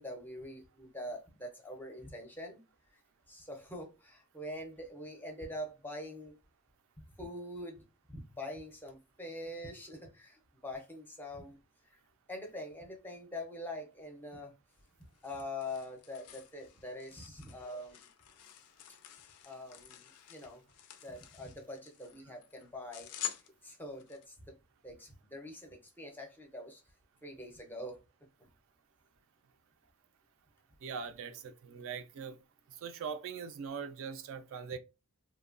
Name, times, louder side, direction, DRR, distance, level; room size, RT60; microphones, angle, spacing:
voice 1, 0.0-2.6 2.9-3.0 3.3-6.3 7.2-11.6 11.9-12.0 12.3-14.5 15.2-18.0 19.4-20.6 21.0-23.1 23.4-24.6 24.8-26.8 27.2-28.0 28.4-28.5, left 1 dB, 10° left, 0.5 m, -44 dB
sound 1, 14.7-24.3, left 9 dB, 85° left, 0.4 m, -48 dB
voice 2, 30.8-32.4 32.8-34.8, right 6 dB, 60° right, 0.3 m, -41 dB
2.9 x 2.2 x 2.4 m
head